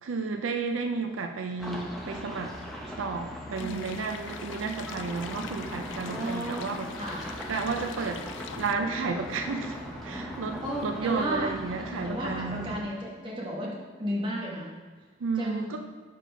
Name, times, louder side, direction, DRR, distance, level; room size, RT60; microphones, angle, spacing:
voice 1, 0.0-2.6 2.8-12.8 15.2-15.8, right 4 dB, 85° right, 5 dB, 0.5 m, -32 dB
sound 1, 1.6-12.8, equal, ahead, 0.9 m, -39 dB
sound 2, 3.6-8.7, left 8 dB, 65° left, 0.3 m, -44 dB
voice 2, 6.0-6.7 7.0-7.2 10.6-11.5 12.0-14.7 15.4-15.7, equal, 25° right, -4 dB, 1.4 m, -33 dB
Mechanisms, 7.1-12.3, right 1 dB, 65° right, 1.1 m, -54 dB
5.3 x 4.3 x 6.1 m, 1.4 s
head